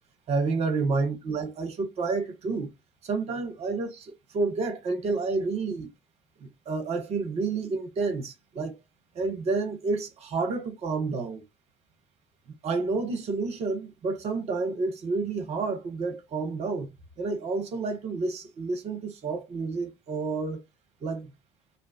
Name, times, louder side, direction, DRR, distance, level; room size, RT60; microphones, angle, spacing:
voice 1, 0.3-2.7 3.0-5.9 6.4-8.8 9.1-11.4 12.6-16.9 17.2-20.6 21.0-21.3, right 4 dB, 45° right, 0.8 m, -29 dB
2.5 x 2.3 x 2.3 m
figure-of-eight pair, 55°, 15 cm